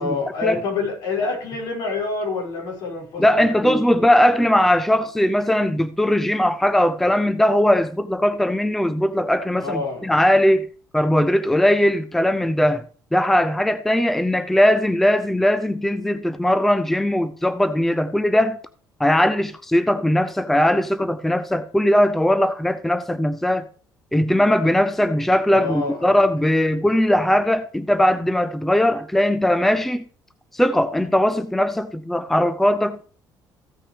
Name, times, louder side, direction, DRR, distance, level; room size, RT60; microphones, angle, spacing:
voice 1, 0.0-3.2 3.6-4.0 9.6-10.1 25.5-26.2, left 3 dB, 70° left, 5.0 m, -27 dB
voice 2, 3.2-10.7 10.9-12.8 13.1-18.6 19.0-23.7 24.1-30.0 30.5-33.1, left 1 dB, 5° left, 0.5 m, -19 dB
15.0 x 5.9 x 4.9 m
cardioid pair, 135°, 7 cm